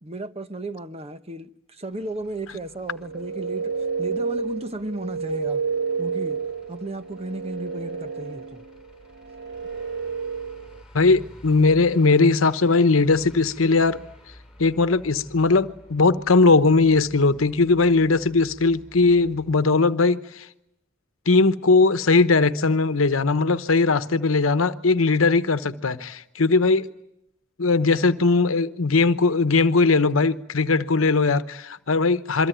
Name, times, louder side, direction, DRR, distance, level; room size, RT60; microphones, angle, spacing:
voice 1, 0.0-3.7 4.0-5.6 6.0-6.4 6.7-8.7, right 1 dB, 30° right, 1.1 m, -34 dB
Truck / Idling, 1.9-19.6, left 1 dB, 5° right, 7.8 m, -51 dB
sound 1, 2.9-10.8, right 5 dB, 60° right, 1.7 m, -30 dB
voice 2, 10.9-14.0 14.6-20.5 21.3-26.9 27.6-32.5, left 3 dB, 85° left, 1.0 m, -19 dB
28.0 x 23.5 x 9.2 m
head